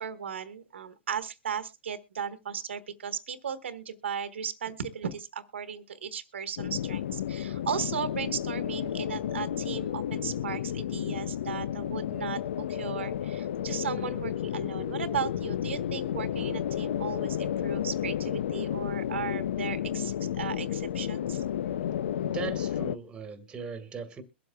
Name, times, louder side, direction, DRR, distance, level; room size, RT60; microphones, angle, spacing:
voice 1, 0.0-21.4, right 7 dB, 90° right, 1.2 m, -36 dB
sound 1, 6.6-23.0, left 10 dB, 75° left, 0.5 m, -32 dB
voice 2, 22.1-24.2, right 5 dB, 15° right, 1.7 m, -39 dB
22.5 x 7.8 x 2.3 m
hypercardioid pair, 135°, 6 cm